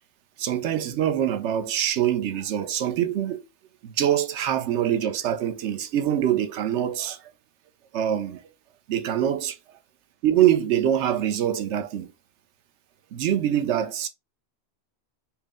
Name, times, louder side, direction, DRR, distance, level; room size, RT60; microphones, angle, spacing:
voice 1, 0.4-3.4 3.8-7.2 7.9-8.4 8.9-9.6 10.2-12.1 13.1-14.1, right 10 dB, 85° right, 0.9 m, -24 dB
4.5 x 2.0 x 3.5 m
omnidirectional pair, 1.1 m